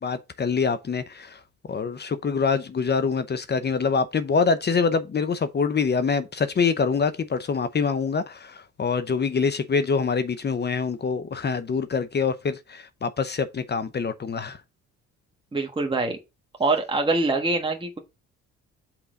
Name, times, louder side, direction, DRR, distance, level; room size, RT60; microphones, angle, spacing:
voice 1, 0.0-1.4 1.7-14.6, left 5 dB, 35° left, 0.7 m, -25 dB
voice 2, 15.5-16.2 16.6-18.0, right 3 dB, 15° right, 1.4 m, -24 dB
5.7 x 3.9 x 5.1 m
cardioid pair, 90°, 30 cm